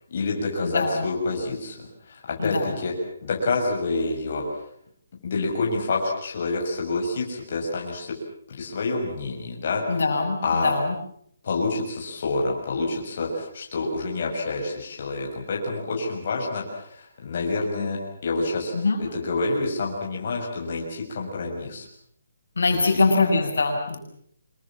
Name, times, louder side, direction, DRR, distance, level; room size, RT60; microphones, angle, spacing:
voice 1, 0.1-2.9 3.2-4.4 5.2-8.1 8.5-10.0 10.4-10.7 11.4-18.7 19.0-21.8 22.7-23.0, left 3 dB, 40° left, -1 dB, 6.4 m, -28 dB
voice 2, 0.6-1.0 2.4-2.7 9.9-11.0 18.7-19.0 22.6-24.0, left 3 dB, 75° left, 3 dB, 6.9 m, -23 dB
26.5 x 23.0 x 7.5 m, 0.66 s
hypercardioid pair, 175°, 0 cm